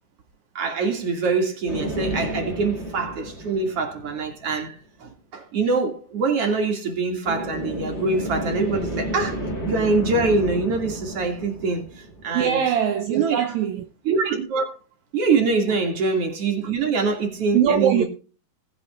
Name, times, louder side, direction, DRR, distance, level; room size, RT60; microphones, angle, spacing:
voice 1, 0.5-11.8 12.2-12.6 13.1-13.4 14.1-14.7 15.1-18.1, right 4 dB, 40° right, 3.1 m, -24 dB
sound 1, 1.7-4.5 7.2-12.7, right 1 dB, 20° left, 2.8 m, -31 dB
voice 2, 12.3-13.9 17.5-18.0, right 9 dB, 75° right, 1.7 m, -21 dB
20.0 x 8.8 x 2.5 m
omnidirectional pair, 4.5 m